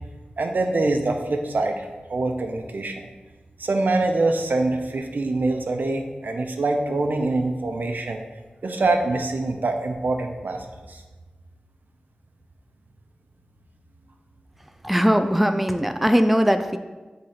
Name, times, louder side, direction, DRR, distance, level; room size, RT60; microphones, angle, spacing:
voice 1, 0.4-3.1 3.6-8.2 8.6-11.0, right 2 dB, 70° right, 4 dB, 0.7 m, -24 dB
voice 2, 14.8-16.8, equal, 5° right, 7 dB, 0.4 m, -20 dB
7.8 x 3.8 x 4.3 m, 1.2 s
wide cardioid pair, 70°, 3 cm